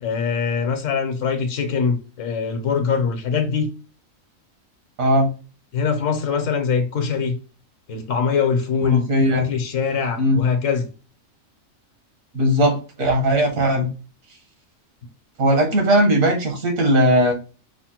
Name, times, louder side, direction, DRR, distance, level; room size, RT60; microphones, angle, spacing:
voice 1, 0.0-3.7 5.7-7.4 7.9-10.9, left 5 dB, 70° left, 1.2 m, -23 dB
voice 2, 5.0-5.3 8.8-9.5 10.2-10.4 12.3-13.9 15.4-17.3, equal, 80° right, 1.7 m, -18 dB
5.5 x 2.1 x 4.3 m
omnidirectional pair, 1.4 m